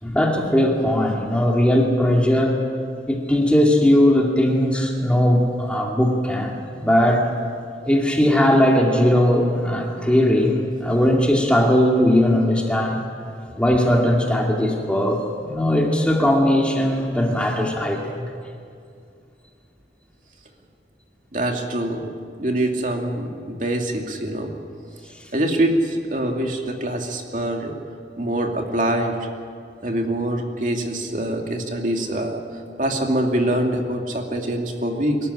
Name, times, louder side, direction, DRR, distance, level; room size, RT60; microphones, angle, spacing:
voice 1, 0.0-2.6 3.1-7.3 7.8-13.0 13.5-18.3, left 1 dB, 5° left, 0 dB, 2.3 m, -19 dB
voice 2, 21.3-22.0 22.4-24.5 25.3-27.7 28.2-29.2 29.8-32.4 32.8-35.2, right 1 dB, 45° right, 2 dB, 2.5 m, -24 dB
24.0 x 14.0 x 9.9 m, 2.4 s
head